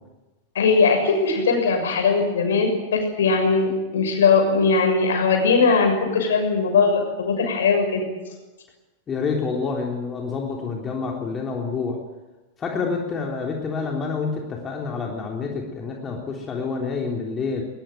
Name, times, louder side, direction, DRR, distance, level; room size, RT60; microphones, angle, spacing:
voice 1, 0.5-8.0, left 4 dB, 65° left, 4 dB, 6.7 m, -20 dB
voice 2, 9.1-12.0 12.6-17.6, left 4 dB, 20° left, 0 dB, 3.4 m, -28 dB
21.5 x 20.5 x 9.2 m, 1.1 s
figure-of-eight pair, 90°, 0 cm